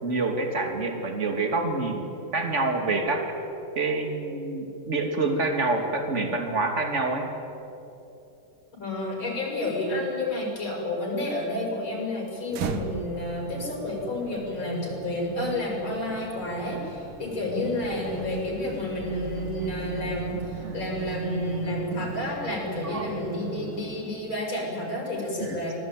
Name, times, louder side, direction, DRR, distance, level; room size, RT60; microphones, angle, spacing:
voice 1, 0.0-3.3 3.8-7.2 20.6-20.8 22.8-23.1 25.4-25.6, right 3 dB, 30° right, 3 dB, 3.1 m, -27 dB
voice 2, 8.8-25.8, left 1 dB, 65° left, -1 dB, 7.1 m, -30 dB
sound 1, 12.5-24.5, right 7 dB, 80° right, 2.2 m, -38 dB
25.0 x 19.0 x 9.3 m, 2.9 s
omnidirectional pair, 2.4 m